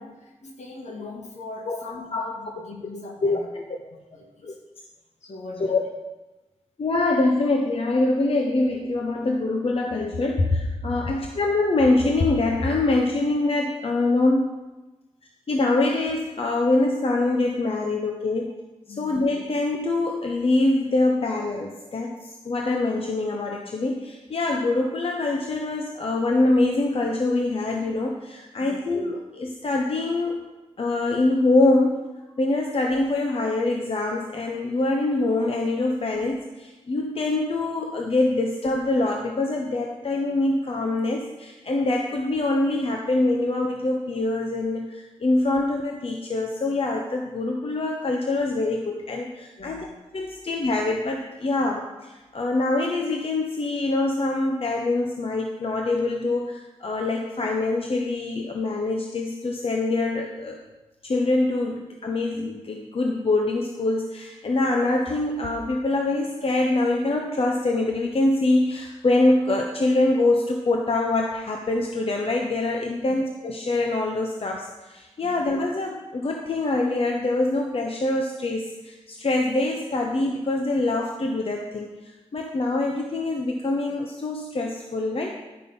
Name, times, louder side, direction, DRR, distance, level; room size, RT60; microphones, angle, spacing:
voice 1, 0.0-0.3 0.6-3.5 3.8-4.6 5.2-5.8 18.9-19.1 28.6-28.8 49.6-49.9 75.2-75.5, left 3 dB, 70° left, 0 dB, 1.9 m, -40 dB
voice 2, 3.2-3.6 4.4-4.5 5.6-5.8 6.8-14.5 15.5-18.5 18.9-30.4 30.8-32.0 32.4-49.9 50.1-60.6 61.0-85.4, left 2 dB, 50° left, 1 dB, 1.0 m, -24 dB
11.0 x 5.5 x 5.4 m, 1.1 s
cardioid pair, 70°, 12 cm